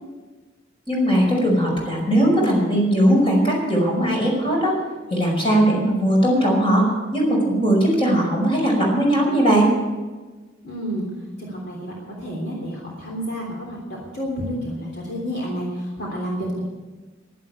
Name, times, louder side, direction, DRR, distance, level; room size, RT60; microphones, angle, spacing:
voice 1, 0.9-4.7 5.1-6.9 7.1-9.7, right 1 dB, 30° left, -1 dB, 5.2 m, -19 dB
voice 2, 10.6-11.0 11.4-16.6, equal, 55° left, -3 dB, 3.3 m, -30 dB
11.5 x 11.0 x 8.4 m, 1.3 s
head